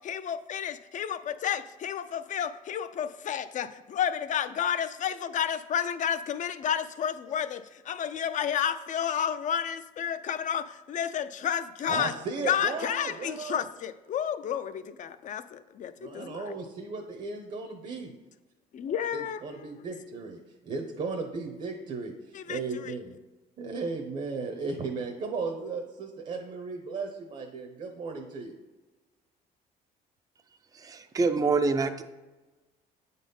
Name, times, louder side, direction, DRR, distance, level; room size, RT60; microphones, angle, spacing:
voice 1, 0.0-12.1 12.4-16.5 18.7-19.7 22.3-22.9, left 8 dB, 50° left, 12 dB, 0.5 m, -31 dB
voice 2, 11.9-13.6 16.0-18.1 19.1-23.1 23.6-28.5, right 4 dB, 45° right, 3 dB, 0.9 m, -36 dB
voice 3, 30.7-32.0, right 4 dB, 20° right, 8 dB, 0.5 m, -26 dB
8.3 x 4.1 x 5.4 m, 1.2 s
cardioid pair, 110°, 17 cm